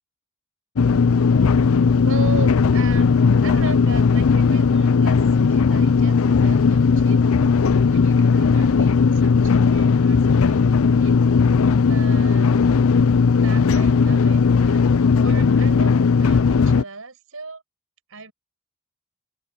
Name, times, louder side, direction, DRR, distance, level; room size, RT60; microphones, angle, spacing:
sound 1, 0.8-16.8, left 5 dB, 70° left, 0.5 m, -17 dB
voice 1, 1.2-5.2 5.5-7.2 7.9-11.2 11.9-12.5 13.1-17.6 18.1-18.3, right 3 dB, 70° right, 6.7 m, -37 dB
open air
head